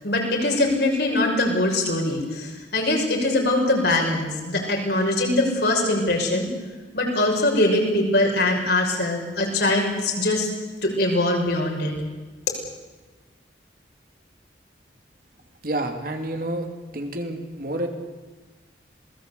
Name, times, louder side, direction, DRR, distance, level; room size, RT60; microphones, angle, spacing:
voice 1, 0.0-6.5 6.9-10.5 10.8-11.9, left 2 dB, 60° left, 1 dB, 6.4 m, -22 dB
voice 2, 15.6-16.7 16.9-17.9, right 1 dB, 50° right, 5 dB, 2.8 m, -29 dB
27.5 x 20.0 x 8.3 m, 1.2 s
head